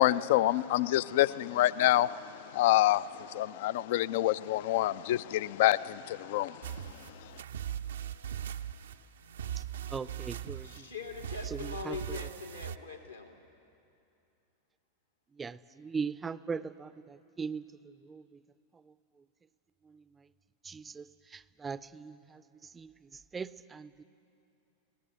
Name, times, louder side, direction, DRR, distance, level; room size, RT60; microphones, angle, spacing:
voice 1, 0.0-2.1 2.5-3.0 3.3-6.5, left 15 dB, 50° left, 18 dB, 0.4 m, -26 dB
sound 1, 6.6-12.8, right 10 dB, 65° right, 0.6 m, -40 dB
voice 2, 9.9-10.9 11.5-12.2 15.4-17.7 18.0-18.2 19.9-20.0 20.6-22.4 22.7-24.0, right 5 dB, 15° right, 17 dB, 0.5 m, -40 dB
voice 3, 10.6-13.3, left 5 dB, 80° left, 2 dB, 2.3 m, -42 dB
25.0 x 18.0 x 8.0 m, 2.7 s
figure-of-eight pair, 90°, 0 cm